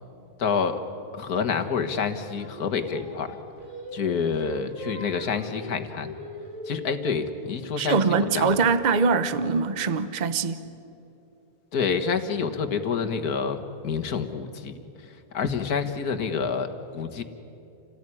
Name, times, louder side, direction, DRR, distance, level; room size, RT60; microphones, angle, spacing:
voice 1, 0.4-0.8 1.1-3.4 3.9-6.2 6.7-8.5 11.7-14.7 15.3-17.2, left 6 dB, 75° left, 2.0 m, -28 dB
Singing, 2.4-7.6, equal, 50° right, 2.8 m, -40 dB
voice 2, 7.8-10.6, right 5 dB, 35° right, 0.9 m, -23 dB
28.5 x 18.5 x 10.0 m
omnidirectional pair, 1.6 m